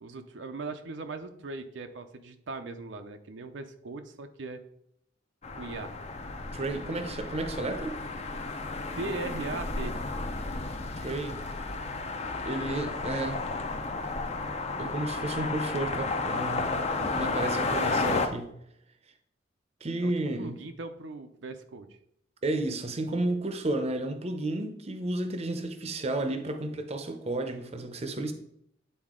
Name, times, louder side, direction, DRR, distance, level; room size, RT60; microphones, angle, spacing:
voice 1, 0.0-4.6 5.5-5.9 9.0-10.0 20.0-20.1 20.4-21.9, right 3 dB, 75° right, 7 dB, 0.6 m, -39 dB
sound 1, 5.4-18.3, left 3 dB, 35° left, 0.6 m, -32 dB
voice 2, 6.5-8.0 11.0-11.5 12.4-13.4 14.8-18.5 19.8-20.6 22.4-28.3, right 2 dB, 35° right, 7 dB, 0.6 m, -32 dB
9.2 x 4.2 x 3.7 m, 0.74 s
head